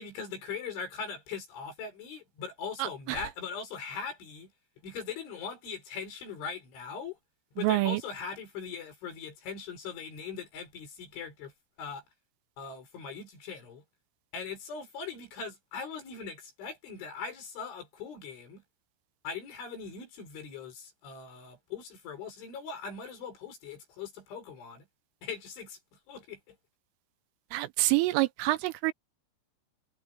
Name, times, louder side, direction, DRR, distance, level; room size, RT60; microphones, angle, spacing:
voice 1, 0.0-4.5 4.8-7.2 7.6-11.5 11.8-12.0 12.6-13.8 14.3-18.6 19.2-24.9 25.2-25.8 26.1-26.6, left 6 dB, 65° left, 8.5 m, -40 dB
voice 2, 2.8-3.2 7.6-8.0 27.5-28.9, right 19 dB, 80° right, 3.2 m, -27 dB
omnidirectional pair, 5.9 m